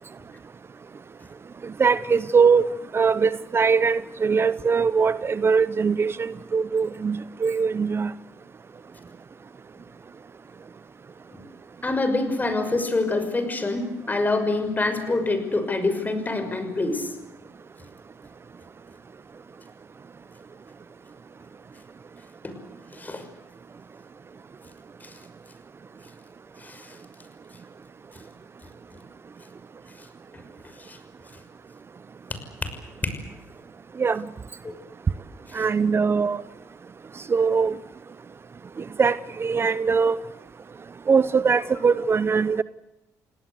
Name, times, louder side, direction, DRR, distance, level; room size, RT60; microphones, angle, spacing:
voice 1, 1.8-2.7 2.9-8.1 34.0-34.2 35.5-36.4 37.3-37.7 39.0-40.2 41.1-42.6, right 5 dB, 35° right, 17 dB, 0.8 m, -21 dB
voice 2, 11.8-17.1 22.4-22.5 22.9-23.2 25.0-25.1 26.6-27.0 30.9-31.0 32.6-32.7 33.0-33.2 34.6-34.7 35.5-35.6, left 2 dB, 25° left, 8 dB, 6.2 m, -26 dB
28.5 x 18.5 x 8.2 m, 0.95 s
supercardioid pair, 70°, 7 cm